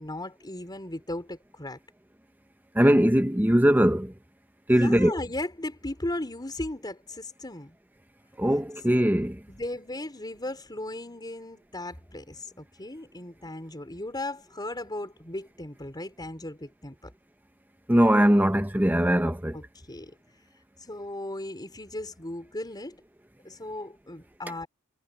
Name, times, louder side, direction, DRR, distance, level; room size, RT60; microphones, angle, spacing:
voice 1, 0.0-1.8 4.7-7.8 9.5-17.1 19.5-20.2 20.8-23.0 23.4-24.7, left 1 dB, 20° left, 4.4 m, -36 dB
voice 2, 2.7-4.1 4.7-5.1 8.4-9.4 17.9-19.6, equal, 10° right, 1.2 m, -21 dB
head